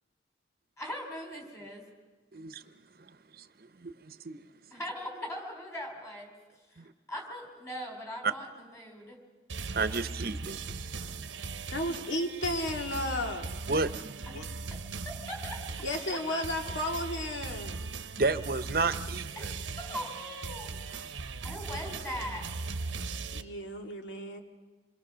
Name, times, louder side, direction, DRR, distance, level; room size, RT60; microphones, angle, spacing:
voice 1, 0.8-1.8 4.7-6.3 6.7-6.8 7.1-9.2 15.0-15.7 16.1-16.2 19.4-19.5 19.8-21.2 21.4-22.6, equal, 15° left, 2 dB, 3.9 m, -40 dB
voice 2, 2.3-2.7 2.9-4.5 6.8-6.9 8.2-8.3 9.7-10.8 11.1-11.2 13.7-14.1 18.2-19.6, right 3 dB, 50° right, 12 dB, 0.8 m, -32 dB
sound 1, 9.5-23.4, right 4 dB, 90° right, 0.9 m, -39 dB
voice 3, 11.7-13.5 14.3-14.5 15.8-17.8 21.9-22.2 23.3-24.4, left 1 dB, 85° left, 3 dB, 2.2 m, -34 dB
27.5 x 22.0 x 6.3 m, 1.3 s
head